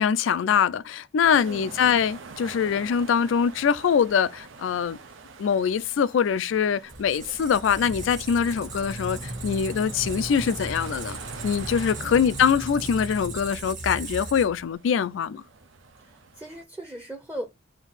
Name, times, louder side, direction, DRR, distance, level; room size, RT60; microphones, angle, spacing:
voice 1, 0.0-5.0 5.4-11.2 11.4-15.4, left 7 dB, 80° left, 0.3 m, -23 dB
sound 1, 1.2-16.6, right 4 dB, 85° right, 0.6 m, -46 dB
voice 2, 1.3-1.7 12.0-12.3 16.0-17.4, right 1 dB, 10° right, 0.6 m, -38 dB
Squeak, 6.9-14.7, right 2 dB, 40° right, 1.1 m, -36 dB
3.6 x 2.7 x 3.9 m
head